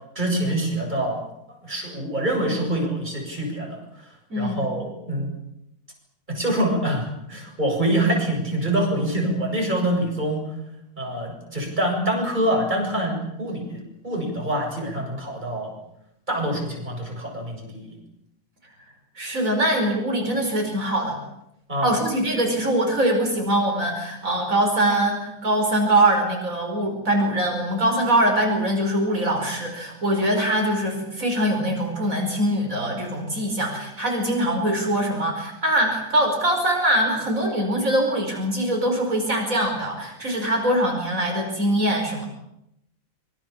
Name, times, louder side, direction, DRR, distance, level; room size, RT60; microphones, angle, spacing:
voice 1, 0.1-1.2 1.5-3.8 4.3-5.3 6.3-10.4 11.0-15.7 16.3-17.9 21.7-22.0, right 1 dB, 35° right, 0 dB, 8.1 m, -25 dB
voice 2, 4.3-4.6 19.2-21.2 21.8-42.3, right 1 dB, 75° right, 1 dB, 5.6 m, -23 dB
26.0 x 24.5 x 7.3 m, 0.80 s
omnidirectional pair, 1.4 m